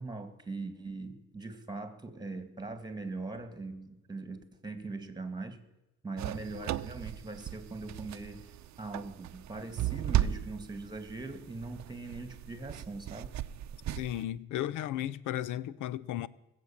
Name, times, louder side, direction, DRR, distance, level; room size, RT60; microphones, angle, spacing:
voice 1, 0.0-5.6 6.0-8.5 8.8-13.3, right 3 dB, 15° right, 2.2 m, -41 dB
sound 1, 6.2-14.2, right 12 dB, 65° right, 0.7 m, -36 dB
voice 2, 14.0-16.3, left 12 dB, 85° left, 0.6 m, -34 dB
19.5 x 8.2 x 7.2 m
cardioid pair, 90°, 30 cm